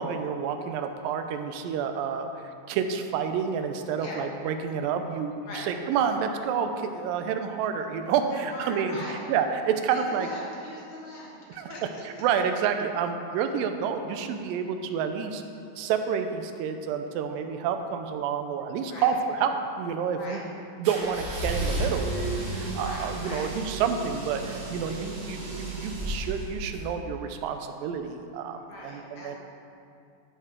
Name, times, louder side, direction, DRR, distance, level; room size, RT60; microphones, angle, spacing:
voice 1, 0.0-2.3 2.7-9.0 9.3-10.3 11.6-11.7 12.2-15.4 15.8-20.4 20.8-22.3 22.5-29.4, right 7 dB, 85° right, 7 dB, 2.2 m, -29 dB
voice 2, 8.3-9.2 9.9-12.2 17.2-17.4 18.9-19.1 20.1-20.4 22.8-23.5 28.7-29.4, left 2 dB, 65° left, -4 dB, 2.0 m, -41 dB
sound 1, 20.8-26.8, right 2 dB, 65° right, 2.8 m, -33 dB
13.0 x 4.6 x 3.6 m, 2.5 s
omnidirectional pair, 3.9 m